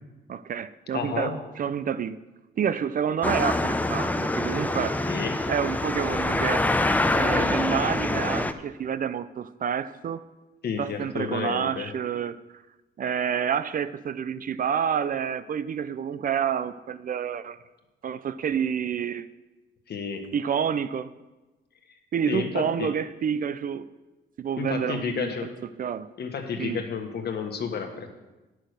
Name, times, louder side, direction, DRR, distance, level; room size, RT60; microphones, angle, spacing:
voice 1, 0.3-2.2 2.6-5.0 5.5-6.7 7.1-10.2 10.8-12.6 13.0-17.6 18.0-19.3 20.3-21.1 22.1-23.9 24.4-25.3 25.8-26.1 26.6-26.8, right 8 dB, 45° right, 14 dB, 0.4 m, -28 dB
voice 2, 0.9-1.4 5.1-5.5 10.6-11.9 19.9-20.3 22.3-22.9 24.6-25.5 26.2-28.1, left 6 dB, 55° left, 5 dB, 1.4 m, -31 dB
sound 1, 3.2-8.5, left 2 dB, 10° left, 0.5 m, -25 dB
9.5 x 6.3 x 6.6 m, 1.1 s
cardioid pair, 90°, 20 cm